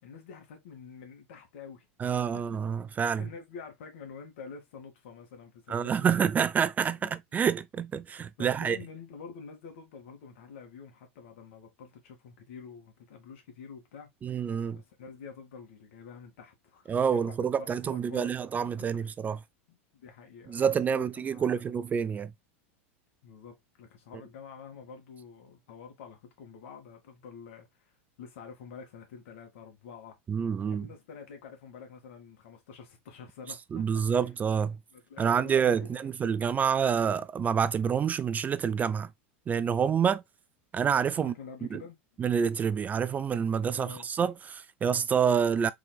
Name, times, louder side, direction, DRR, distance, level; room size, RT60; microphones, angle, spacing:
voice 1, 0.0-2.4 3.2-6.2 7.0-7.1 8.4-14.1 14.7-18.3 18.8-19.1 19.7-21.6 23.2-27.7 28.2-30.2 30.7-34.2 34.9-36.1 41.2-42.0 43.6-44.1, left 6 dB, 70° left, 2.1 m, -47 dB
voice 2, 2.0-3.3 5.7-8.8 14.2-14.8 16.9-19.4 20.5-22.3 30.3-30.9 33.7-34.8 35.2-39.1 39.5-40.2 40.7-41.3 41.7-41.8 42.2-45.7, right 7 dB, 25° right, 0.3 m, -27 dB
4.0 x 3.9 x 2.2 m
hypercardioid pair, 105°, 7 cm